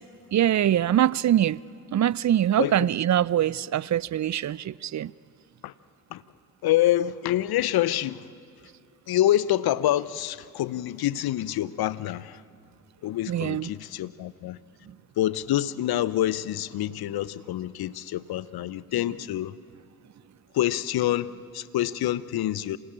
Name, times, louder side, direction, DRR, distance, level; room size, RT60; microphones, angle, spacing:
voice 1, 0.3-1.6 1.9-5.1 13.3-13.7, right 11 dB, 45° right, 0.6 m, -23 dB
voice 2, 6.6-8.3 9.1-12.4 13.0-14.6 15.2-19.5 20.5-22.8, left 13 dB, 65° left, 0.8 m, -26 dB
27.5 x 18.5 x 8.7 m
hypercardioid pair, 45°, 39 cm